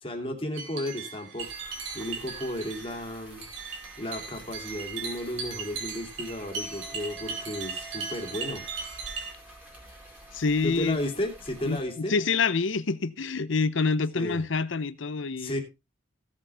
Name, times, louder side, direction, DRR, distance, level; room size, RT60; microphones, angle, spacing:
voice 1, 0.0-1.6 1.9-3.5 4.0-8.6 10.6-12.2 14.1-14.4 15.4-15.6, left 1 dB, 30° left, 2.7 m, -34 dB
sound 1, 0.5-9.3, right 5 dB, 70° right, 3.6 m, -38 dB
sound 2, 1.4-11.8, equal, 5° right, 4.3 m, -49 dB
Wind instrument woodwind instrument, 6.2-12.4, right 2 dB, 30° right, 4.1 m, -52 dB
voice 2, 10.3-11.0 11.6-15.5, left 4 dB, 75° left, 0.7 m, -27 dB
16.5 x 7.6 x 3.5 m
head